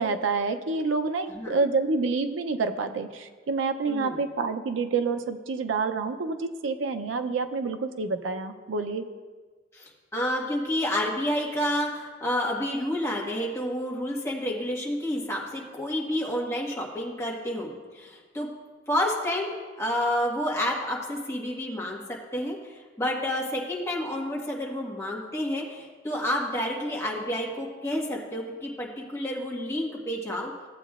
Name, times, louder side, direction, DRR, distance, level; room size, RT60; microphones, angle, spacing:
voice 1, 0.0-9.1, right 4 dB, 80° right, 8 dB, 0.5 m, -28 dB
voice 2, 1.3-1.6 3.9-4.2 9.7-18.5 18.9-30.5, left 1 dB, 15° left, -3 dB, 1.4 m, -30 dB
15.0 x 8.1 x 2.4 m, 1.4 s
head